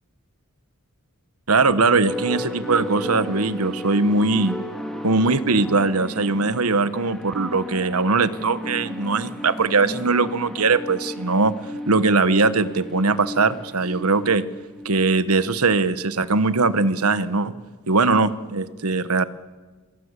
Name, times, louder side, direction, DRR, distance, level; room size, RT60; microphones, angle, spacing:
voice 1, 1.5-4.6 5.0-11.5 11.9-14.4 14.8-17.5 17.9-19.2, right 3 dB, 90° right, 13 dB, 1.2 m, -20 dB
sound 1, 2.1-15.4, equal, ahead, 2.5 m, -34 dB
27.5 x 23.0 x 8.3 m, 1.3 s
head